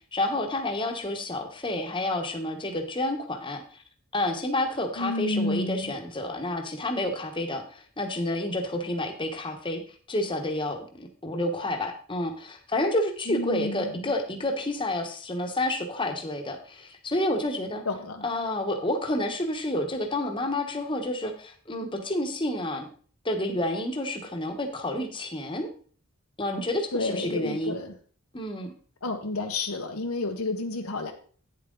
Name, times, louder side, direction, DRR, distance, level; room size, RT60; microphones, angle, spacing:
voice 1, 0.1-3.8 4.1-9.8 10.1-17.8 18.2-22.9 23.2-25.7 26.4-27.8 28.3-28.7, left 1 dB, 25° left, 4 dB, 1.2 m, -29 dB
voice 2, 5.0-5.9 13.3-13.9 17.8-18.2 26.9-27.9 29.0-31.1, left 2 dB, 90° left, 4 dB, 1.3 m, -30 dB
9.5 x 7.4 x 3.9 m, 0.43 s
head